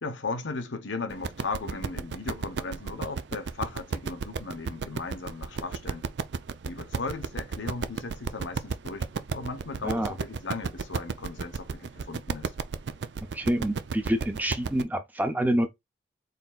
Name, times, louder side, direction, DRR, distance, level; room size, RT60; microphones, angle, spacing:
voice 1, 0.0-6.1 6.6-12.5, left 3 dB, 85° left, 1.0 m, -36 dB
sound 1, 1.1-14.8, right 5 dB, 70° right, 0.4 m, -33 dB
voice 2, 9.8-10.1 13.3-15.7, right 1 dB, 10° right, 0.6 m, -27 dB
4.2 x 4.1 x 2.3 m
head